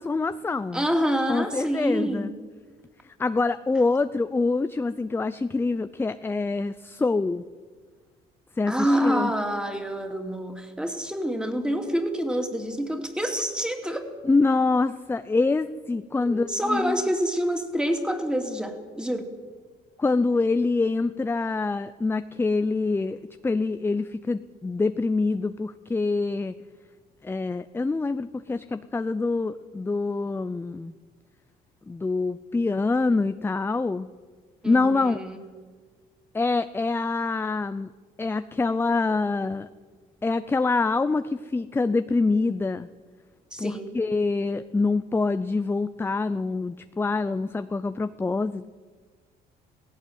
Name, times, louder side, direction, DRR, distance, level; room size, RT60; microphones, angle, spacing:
voice 1, 0.0-0.9 1.3-2.3 3.2-7.4 8.6-9.3 14.2-17.0 20.0-26.5 27.2-30.9 31.9-34.1 34.6-35.2 36.3-37.9 38.2-39.7 40.2-42.9 43.6-48.7, left 3 dB, 15° left, 12 dB, 0.5 m, -25 dB
voice 2, 0.7-2.3 8.7-14.0 16.2-19.3 34.6-35.4 43.5-43.9, equal, 5° right, 5 dB, 2.8 m, -27 dB
16.5 x 16.5 x 9.4 m, 1.5 s
cardioid pair, 110°, 17 cm